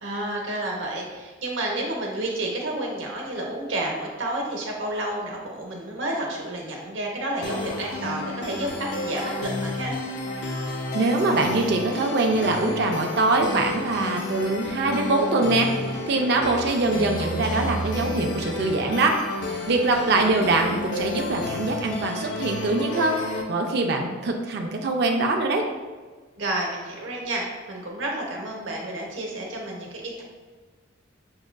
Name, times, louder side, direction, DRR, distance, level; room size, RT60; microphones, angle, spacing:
voice 1, 0.0-9.9 26.4-27.4 27.7-30.2, right 1 dB, 70° right, -1 dB, 0.9 m, -30 dB
sound 1, 7.4-23.4, left 2 dB, 60° left, 0.5 m, -31 dB
voice 2, 10.9-19.2 19.7-23.2 23.5-25.6, right 2 dB, 55° right, 2 dB, 0.4 m, -23 dB
6.1 x 2.4 x 2.2 m, 1.4 s
head